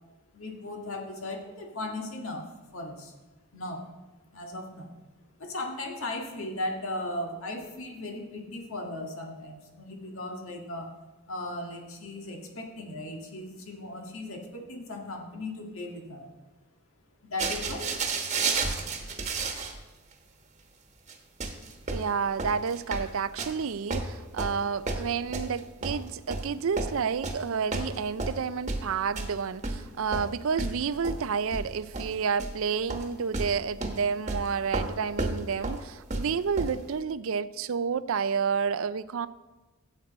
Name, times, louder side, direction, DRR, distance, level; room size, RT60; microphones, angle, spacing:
voice 1, 0.3-3.1 3.5-3.9 4.3-4.9 5.4-10.9 11.3-16.3 17.2-17.9 18.7-19.1, left 1 dB, 65° left, 2 dB, 1.8 m, -37 dB
sound 1, 17.4-19.8 20.1-20.2 21.1-21.2 21.4-23.6 23.9-26.5 26.8-27.5 27.7-29.4 29.6-32.6 32.9-33.1 33.3-36.9, right 3 dB, 35° right, 1.3 m, -32 dB
voice 2, 21.9-39.3, right 6 dB, 70° right, 16 dB, 0.4 m, -30 dB
14.5 x 8.2 x 4.2 m, 1.2 s
head